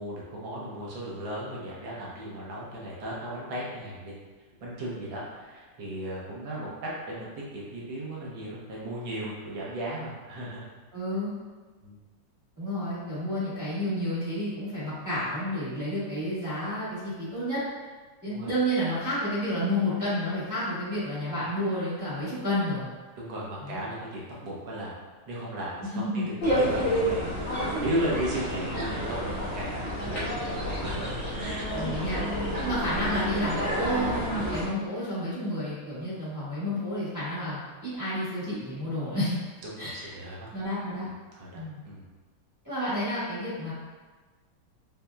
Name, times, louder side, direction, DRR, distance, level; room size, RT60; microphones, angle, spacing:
voice 1, 0.0-4.1 4.6-10.7 11.8-12.0 18.3-18.5 23.2-25.0 25.3-26.2 26.6-31.7 39.6-40.5 41.0-42.1, right 1 dB, 70° right, -5 dB, 1.4 m, -36 dB
voice 2, 10.9-11.3 12.6-17.6 18.2-22.9 23.6-23.8 26.0-26.3 31.7-32.2 32.6-39.4 39.8-40.1 40.5-41.1 41.5-41.8 42.6-43.7, equal, 15° right, -13 dB, 0.8 m, -30 dB
sound 1, 26.4-34.7, equal, 50° left, 0.8 m, -29 dB
5.4 x 2.1 x 2.2 m, 1.3 s
omnidirectional pair, 2.4 m